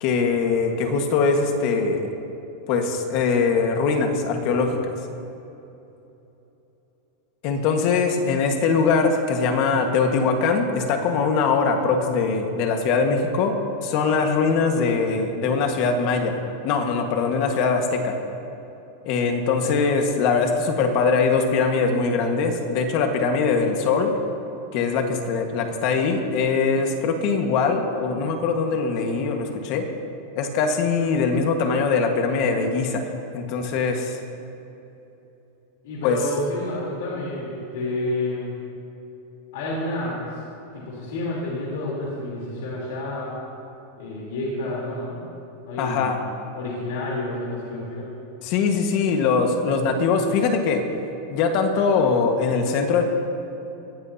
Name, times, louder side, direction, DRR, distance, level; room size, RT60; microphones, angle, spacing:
voice 1, 0.0-2.1 2.7-4.9 7.4-13.6 13.8-18.2 19.0-24.1 24.7-29.9 30.3-34.2 36.0-36.2 45.8-46.2 48.4-50.8 51.3-53.0, left 4 dB, 40° left, 4 dB, 1.5 m, -22 dB
voice 2, 35.8-38.6 39.5-40.4 40.7-43.4 44.0-45.2 45.6-46.1 46.6-48.1, left 1 dB, 65° left, -5 dB, 3.5 m, -29 dB
21.0 x 15.0 x 2.8 m, 3.0 s
supercardioid pair, 170°, 0 cm